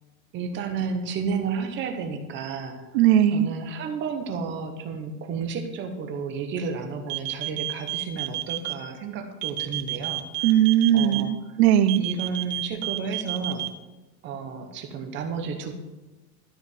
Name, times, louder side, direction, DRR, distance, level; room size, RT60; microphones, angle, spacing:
voice 1, 0.3-2.9 3.3-10.5 10.9-11.6 12.0-13.6 14.2-15.7, right 5 dB, 25° right, 5 dB, 0.9 m, -32 dB
voice 2, 2.9-3.5 10.4-12.0, right 11 dB, 45° right, 12 dB, 0.5 m, -19 dB
sound 1, 7.1-8.7 9.4-11.2 11.9-13.7, right 17 dB, 70° right, 1.2 m, -30 dB
13.0 x 5.0 x 7.7 m, 1.1 s
supercardioid pair, 170°, 49 cm